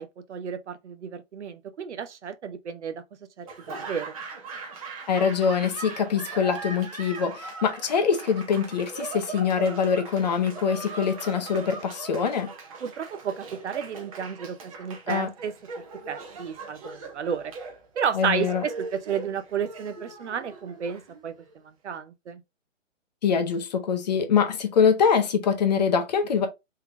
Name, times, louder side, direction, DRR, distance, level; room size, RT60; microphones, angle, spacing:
voice 1, 0.0-3.0 3.4-4.1 12.8-15.5 16.1-17.5 18.0-21.3 21.8-22.4, right 7 dB, 60° right, 0.8 m, -32 dB
Laughter / Applause, 3.4-21.5, right 4 dB, 25° right, 0.8 m, -40 dB
voice 2, 5.1-12.5 15.1-15.3 18.1-18.6 23.2-26.5, left 6 dB, 35° left, 0.7 m, -24 dB
3.7 x 3.4 x 3.1 m
hypercardioid pair, 150°, 39 cm